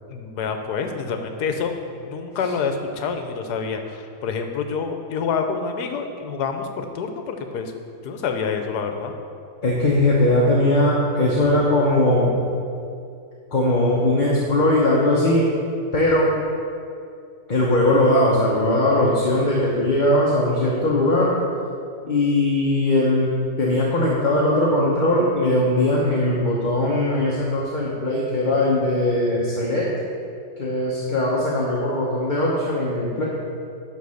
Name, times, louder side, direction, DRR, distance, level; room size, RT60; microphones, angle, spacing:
voice 1, 0.1-7.7 8.0-9.1, left 5 dB, 75° left, 6 dB, 1.3 m, -27 dB
voice 2, 9.6-12.3 13.5-15.5 15.9-16.3 17.5-21.3 22.0-23.3 23.6-29.9 30.6-33.2, left 1 dB, 35° left, -5 dB, 0.9 m, -20 dB
11.0 x 3.9 x 6.4 m, 2.5 s
omnidirectional pair, 1.7 m